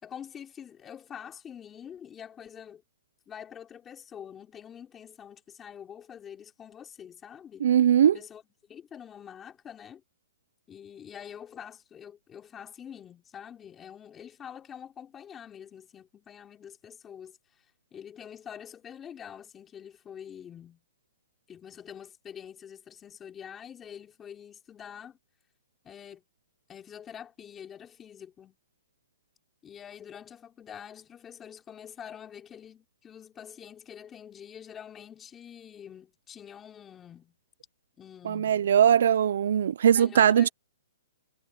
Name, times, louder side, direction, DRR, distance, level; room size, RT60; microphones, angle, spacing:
voice 1, 0.0-2.8 3.3-7.7 8.1-8.4 8.7-10.0 10.7-17.7 17.9-20.8 21.5-25.2 25.8-26.2 26.7-28.6 29.6-37.4 38.0-38.7 39.9-40.5, left 8 dB, 15° left, 3.9 m, -46 dB
voice 2, 7.6-8.2 38.2-40.5, right 9 dB, 65° right, 0.7 m, -20 dB
hypercardioid pair, 145°, 0 cm